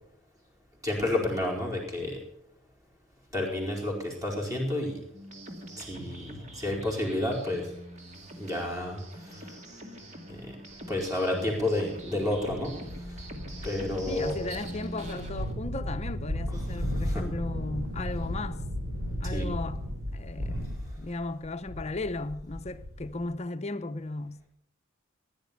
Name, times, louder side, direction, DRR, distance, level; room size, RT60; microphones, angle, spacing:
voice 1, 0.8-2.2 3.3-5.0 5.8-7.7 8.4-9.5 10.3-10.5 10.9-12.7 13.6-14.4 16.5-17.3 19.2-19.5, left 1 dB, 15° right, 4.4 m, -31 dB
sound 1, 5.1-15.5, right 1 dB, 35° right, 2.2 m, -43 dB
sound 2, 12.5-23.2, equal, 85° right, 3.5 m, -35 dB
voice 2, 14.1-18.6 19.2-19.8 20.1-24.5, left 2 dB, 30° left, 0.8 m, -36 dB
16.0 x 10.5 x 6.8 m
head